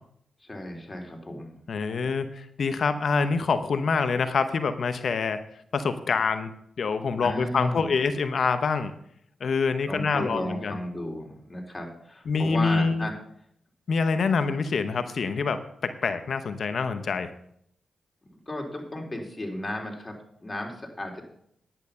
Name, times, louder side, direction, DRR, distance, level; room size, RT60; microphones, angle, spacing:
voice 1, 0.4-1.5 7.2-8.0 9.9-13.1 18.5-21.2, left 1 dB, 25° left, 1 dB, 3.8 m, -34 dB
voice 2, 1.7-5.4 5.7-6.5 6.8-8.9 9.4-10.8 12.3-13.1 13.9-17.3, left 5 dB, 65° left, 10 dB, 1.0 m, -26 dB
10.5 x 9.0 x 5.7 m, 0.69 s
supercardioid pair, 45°, 0 cm